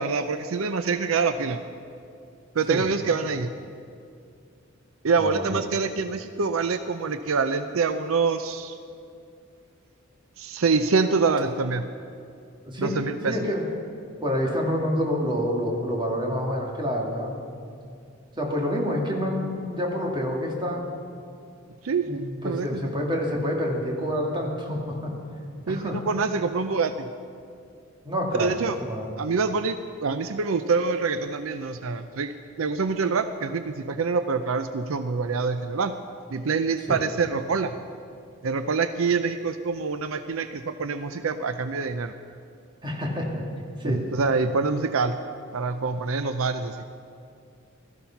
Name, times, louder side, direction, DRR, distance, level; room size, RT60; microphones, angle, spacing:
voice 1, 0.0-1.6 2.5-3.5 5.0-8.8 10.4-11.9 12.8-13.4 21.8-22.9 25.7-27.1 28.4-28.8 29.2-35.9 36.3-37.8 38.4-42.1 43.8-45.2 45.5-46.8, right 4 dB, 75° right, 10 dB, 0.6 m, -26 dB
voice 2, 13.2-13.6 14.2-17.3 18.4-20.9 22.0-25.1 25.7-26.0 28.0-28.6 28.8-29.2 36.9-37.0 42.8-43.4 43.8-44.0, equal, 25° right, -1 dB, 2.3 m, -27 dB
17.5 x 13.0 x 5.8 m, 2.4 s
head